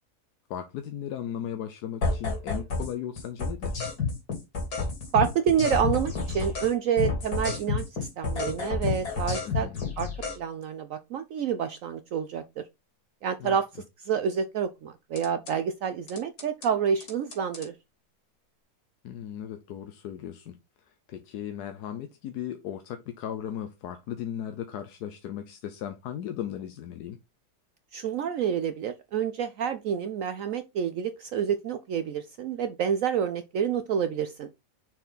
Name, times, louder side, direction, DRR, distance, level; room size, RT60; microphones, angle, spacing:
voice 1, 0.5-3.8 9.4-9.8 13.4-13.6 19.0-20.6 21.1-27.2, left 10 dB, 90° left, 1.3 m, -36 dB
sound 1, 2.0-2.9 3.2-6.7 7.0-10.4 15.2-15.5 16.1-16.7 17.0-17.7, left 4 dB, 75° left, 2.8 m, -30 dB
voice 2, 5.1-9.7 10.0-10.1 10.3-12.6 13.2-17.7 27.9-34.5, right 8 dB, 65° right, 0.9 m, -28 dB
6.2 x 4.4 x 3.9 m
omnidirectional pair, 1.7 m